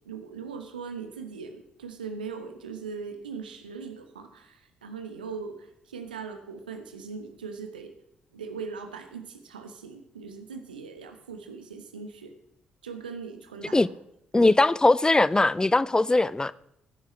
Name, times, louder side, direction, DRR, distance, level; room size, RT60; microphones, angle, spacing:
voice 1, 0.0-7.9 8.3-12.3 12.8-14.0 14.3-14.5, right 5 dB, 80° right, 1.0 m, -40 dB
voice 2, 14.3-16.5, left 2 dB, 15° left, 0.4 m, -20 dB
18.0 x 10.0 x 3.2 m
figure-of-eight pair, 40°, 5 cm